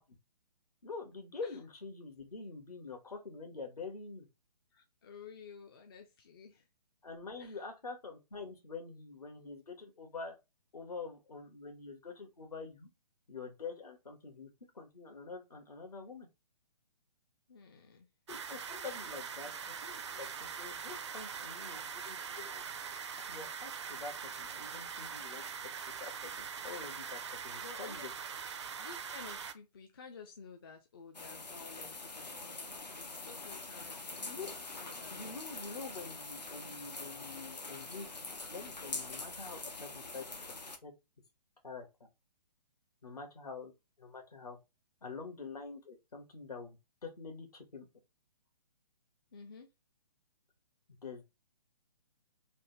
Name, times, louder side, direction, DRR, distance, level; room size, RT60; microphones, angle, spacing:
voice 1, 0.8-4.3 7.0-10.4 10.7-12.9 13.3-14.5 14.7-16.3 18.3-19.5 19.8-22.9 23.3-24.1 24.4-25.4 26.0-28.1 28.4-28.5 34.2-34.5 35.1-40.2 40.8-40.9 41.6-41.9 43.0-43.7 44.0-44.6 45.0-46.8 47.0-47.8 51.0-51.3, left 4 dB, 65° left, 1.2 m, -46 dB
voice 2, 4.7-6.7 7.4-7.6 17.5-18.1 27.6-28.1 28.8-34.5 34.8-35.2 49.3-49.7, left 5 dB, 35° left, 0.4 m, -53 dB
sound 1, 18.3-29.5, right 6 dB, 45° right, 0.4 m, -42 dB
sound 2, 31.1-40.8, left 3 dB, 80° left, 0.7 m, -44 dB
3.3 x 2.1 x 2.9 m
figure-of-eight pair, 130°, 21 cm